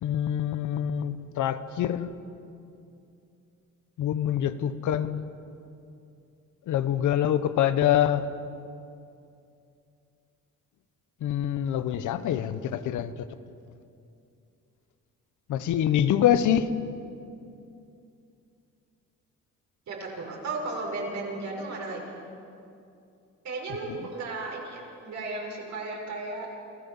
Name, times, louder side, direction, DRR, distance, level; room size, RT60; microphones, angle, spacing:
voice 1, 0.0-2.1 4.0-5.2 6.7-8.2 11.2-13.1 15.5-16.7, left 10 dB, 80° left, 1.1 m, -25 dB
voice 2, 19.9-22.2 23.4-26.5, right 3 dB, 65° right, 6.1 m, -35 dB
28.5 x 15.0 x 7.2 m
cardioid pair, 90°, 30 cm